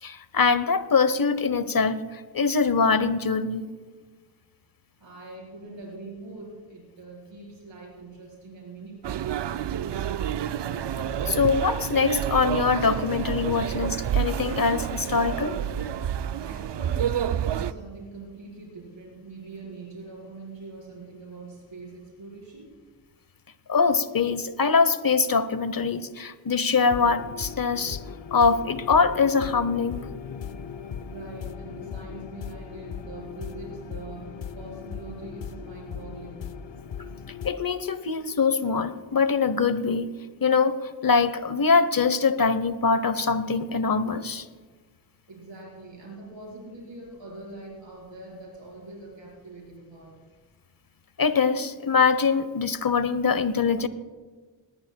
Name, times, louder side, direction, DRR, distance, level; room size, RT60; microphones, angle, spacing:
voice 1, 0.0-3.7 11.3-15.6 23.7-28.0 28.3-30.0 37.4-40.1 40.4-44.4 51.2-53.9, left 5 dB, 50° left, 13 dB, 0.9 m, -23 dB
voice 2, 5.0-9.3 16.4-22.7 31.1-36.5 45.3-50.1, right 3 dB, 85° right, -5 dB, 4.5 m, -43 dB
sound 1, 9.0-17.7, right 9 dB, 70° right, 0.5 m, -29 dB
sound 2, 26.9-37.5, left 7 dB, 80° left, 0.7 m, -38 dB
19.5 x 18.5 x 2.3 m, 1.5 s
cardioid pair, 45°, 43 cm